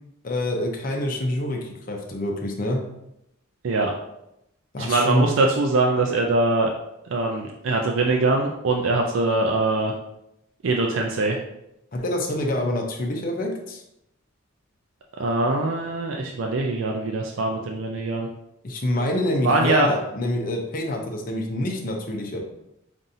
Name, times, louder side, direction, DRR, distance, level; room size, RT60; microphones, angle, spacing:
voice 1, 0.2-2.8 4.7-5.3 11.9-13.8 18.6-22.4, left 1 dB, 45° left, 1 dB, 0.6 m, -26 dB
voice 2, 4.8-6.7 7.1-9.9 10.6-11.4 15.2-18.3 19.4-19.9, right 2 dB, 70° right, 1 dB, 0.4 m, -22 dB
5.5 x 2.6 x 2.6 m, 0.83 s
head